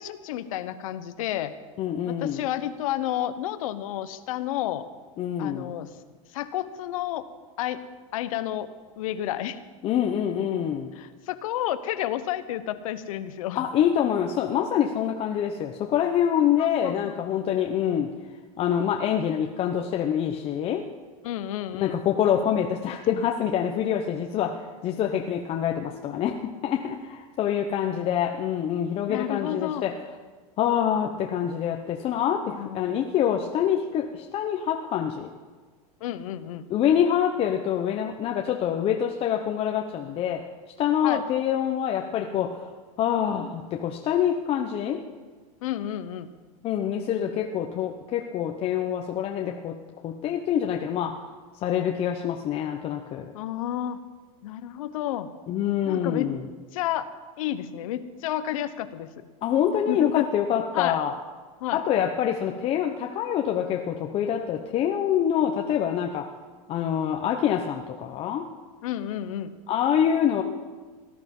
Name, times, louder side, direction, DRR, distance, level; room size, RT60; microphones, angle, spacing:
voice 1, 0.0-1.5 2.1-4.8 5.4-5.9 6.3-7.2 7.6-7.8 8.1-8.7 9.0-9.6 11.0-13.6 16.6-17.1 21.2-22.0 29.1-29.8 32.5-32.9 36.0-36.6 41.0-41.2 45.6-46.3 47.8-47.9 53.3-54.0 54.4-55.3 55.8-56.3 56.7-57.1 57.4-59.1 59.9-60.3 60.7-61.0 61.6-61.8 68.8-69.5, left 12 dB, 70° left, 12 dB, 1.1 m, -31 dB
voice 2, 1.8-2.5 5.2-5.7 9.8-10.9 13.5-18.1 18.6-20.8 21.7-29.9 30.6-35.3 36.7-40.4 40.8-42.7 43.0-45.0 46.6-49.8 50.0-51.2 51.6-53.3 55.5-56.5 59.4-61.1 61.7-66.3 66.7-68.5 69.7-70.4, left 9 dB, 35° left, 2 dB, 0.9 m, -26 dB
18.5 x 12.0 x 5.5 m, 1.4 s
supercardioid pair, 145°, 18 cm